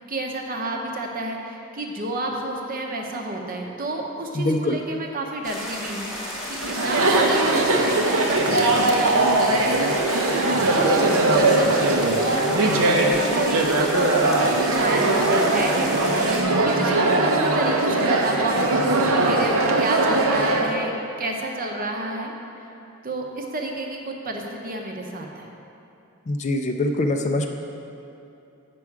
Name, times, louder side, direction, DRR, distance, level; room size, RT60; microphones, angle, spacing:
voice 1, 0.1-20.9 21.2-22.3 23.0-25.4, right 2 dB, 40° right, 1 dB, 0.8 m, -30 dB
voice 2, 4.4-4.8 26.3-27.5, left 2 dB, 30° left, 4 dB, 0.4 m, -23 dB
sound 1, 5.4-16.4, equal, 5° right, 1.3 m, -33 dB
Chatter, 6.6-20.7, right 2 dB, 65° right, 0.7 m, -20 dB
8.4 x 6.1 x 4.7 m, 2.9 s
head